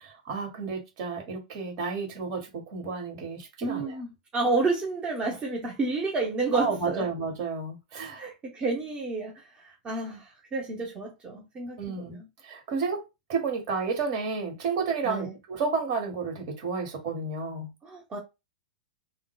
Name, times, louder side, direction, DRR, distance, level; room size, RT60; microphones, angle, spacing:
voice 1, 0.0-4.0 6.5-8.3 11.8-13.0 13.3-17.7, right 4 dB, 50° right, 1.5 m, -31 dB
voice 2, 3.6-7.1 8.1-12.3 15.0-15.3 17.8-18.2, right 3 dB, 25° right, 0.8 m, -30 dB
3.6 x 2.2 x 2.3 m
hypercardioid pair, 110°, 4 cm